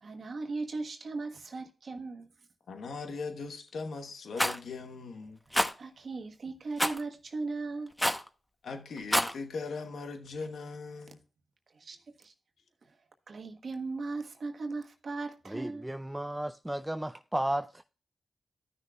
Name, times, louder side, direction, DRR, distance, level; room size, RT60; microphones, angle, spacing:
voice 1, 0.0-2.3 5.5-7.9 11.7-12.3 12.8-13.0 13.3-15.9, right 3 dB, 65° right, 1.3 m, -38 dB
voice 2, 2.7-5.4 8.6-11.2, left 4 dB, 80° left, 1.0 m, -39 dB
Rattle, 4.4-4.6 5.5-5.7 6.8-7.0 8.0-8.3 9.0-9.3, equal, 10° left, 0.9 m, -27 dB
voice 3, 15.5-17.8, right 1 dB, 15° right, 0.4 m, -34 dB
13.5 x 6.3 x 2.3 m
cardioid pair, 45°, 0 cm